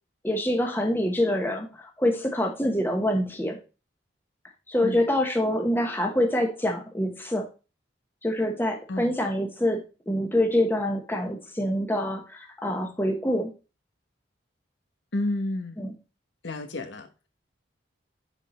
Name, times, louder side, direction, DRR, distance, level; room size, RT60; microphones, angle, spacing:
voice 1, 0.2-3.6 4.7-7.4 8.2-13.5 15.8-15.9, left 1 dB, 10° left, 1.2 m, -26 dB
voice 2, 15.1-15.8 16.4-17.1, left 2 dB, 80° left, 1.1 m, -30 dB
9.8 x 4.5 x 3.1 m
head